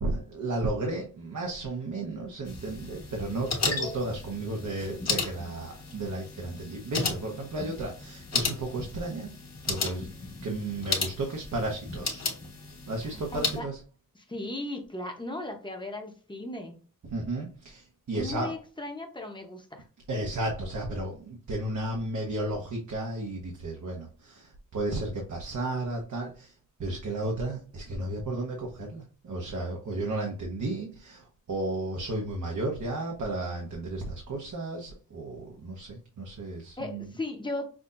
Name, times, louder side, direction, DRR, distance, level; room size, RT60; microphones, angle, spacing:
voice 1, 0.0-9.3 9.7-10.1 10.4-12.2 12.9-13.8 17.1-18.5 20.1-26.5 26.8-37.1, right 2 dB, 65° right, 0 dB, 1.0 m, -33 dB
sound 1, 2.5-13.6, left 4 dB, 55° left, 1.4 m, -34 dB
voice 2, 13.0-13.7 14.1-16.8 18.1-19.8 36.8-37.7, left 2 dB, 15° left, 3 dB, 0.9 m, -37 dB
6.1 x 2.8 x 2.5 m, 0.38 s
wide cardioid pair, 165°, 31 cm